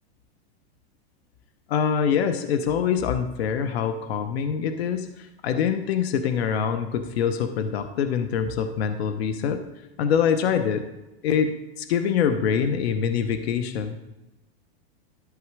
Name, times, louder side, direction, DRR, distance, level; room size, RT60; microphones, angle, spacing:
voice 1, 1.7-9.6 10.0-10.8 11.2-13.9, left 7 dB, 70° left, 9 dB, 0.9 m, -24 dB
13.0 x 6.2 x 4.7 m, 0.98 s
supercardioid pair, 170°, 32 cm